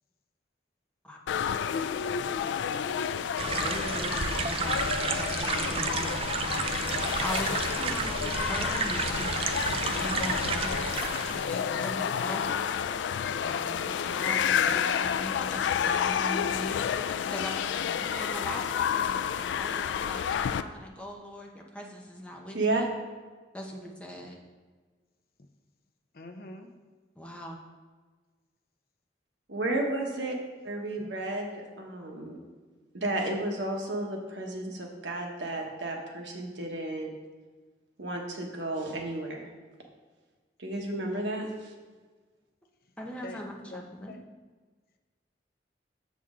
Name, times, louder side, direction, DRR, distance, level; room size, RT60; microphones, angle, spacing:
sound 1, 1.3-20.6, left 8 dB, 85° left, 0.3 m, -30 dB
voice 1, 3.4-4.1 4.4-9.3 9.9-10.9 11.3-12.9 13.4-22.9 23.5-24.4 27.2-27.6 43.0-44.2, equal, 5° left, -1 dB, 0.8 m, -40 dB
sound 2, 3.4-11.5, right 5 dB, 30° right, 0.3 m, -31 dB
voice 2, 10.4-11.0 11.7-12.0 17.8-17.9 26.1-26.7 31.0-31.1 43.2-43.4 43.7-44.2, left 2 dB, 55° left, 5 dB, 0.6 m, -44 dB
voice 3, 29.5-30.4 30.6-32.4 32.9-37.1 38.0-39.5 40.6-41.7, right 2 dB, 85° right, 1 dB, 1.2 m, -32 dB
7.0 x 6.1 x 3.7 m, 1.4 s
head